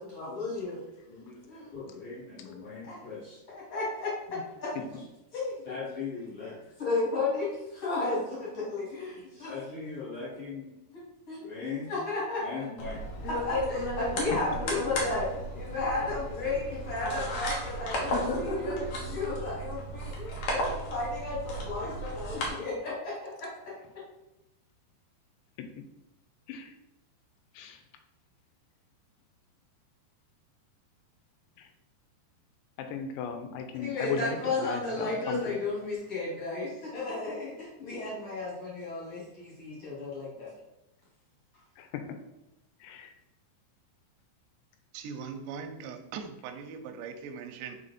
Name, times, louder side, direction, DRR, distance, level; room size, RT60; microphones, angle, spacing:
voice 1, 0.0-4.8 5.3-10.7 10.9-23.5 33.7-40.5, left 3 dB, 40° left, -7 dB, 2.7 m, -34 dB
sound 1, 12.8-22.5, equal, 65° left, 1.8 m, -34 dB
voice 2, 32.8-35.6 41.8-42.2 42.8-43.1, left 6 dB, 85° left, 6 dB, 3.0 m, -37 dB
voice 3, 44.9-47.8, right 6 dB, 80° right, 6 dB, 2.5 m, -40 dB
5.8 x 4.9 x 4.2 m, 0.93 s
omnidirectional pair, 5.2 m